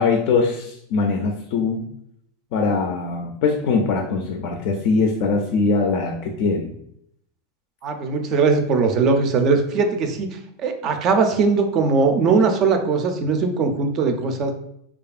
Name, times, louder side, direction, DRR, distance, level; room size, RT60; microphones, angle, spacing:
voice 1, 0.0-1.8 2.5-6.7, left 4 dB, 60° left, 3 dB, 0.3 m, -22 dB
voice 2, 7.8-14.5, right 4 dB, 40° right, 6 dB, 0.4 m, -20 dB
2.7 x 2.3 x 2.4 m, 0.75 s
supercardioid pair, 125°, 0 cm